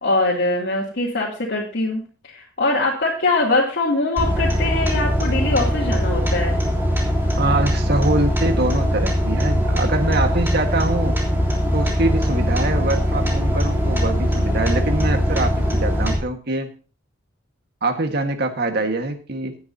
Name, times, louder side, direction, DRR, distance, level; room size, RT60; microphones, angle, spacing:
voice 1, 0.0-6.6, left 2 dB, 60° left, -5 dB, 2.9 m, -22 dB
sound 1, 4.2-16.2, equal, 10° right, 3.4 m, -21 dB
voice 2, 7.4-11.1 11.7-16.7 17.8-19.6, right 2 dB, 55° right, 6 dB, 1.6 m, -24 dB
17.5 x 9.6 x 2.8 m, 0.36 s
head